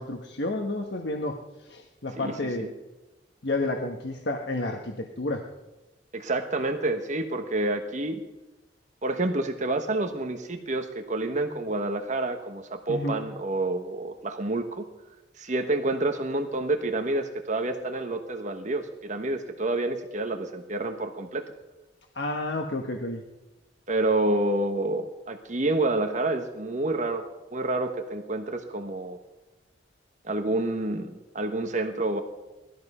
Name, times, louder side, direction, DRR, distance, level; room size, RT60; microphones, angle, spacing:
voice 1, 0.0-2.7 3.4-5.4 12.9-13.2 22.1-23.2, left 2 dB, 70° left, 3 dB, 1.3 m, -31 dB
voice 2, 2.2-2.7 6.1-8.2 9.0-14.9 15.4-21.4 23.9-27.2 27.5-29.2 30.2-32.2, right 2 dB, 40° right, 6 dB, 1.2 m, -28 dB
19.0 x 13.0 x 5.6 m, 1.0 s
head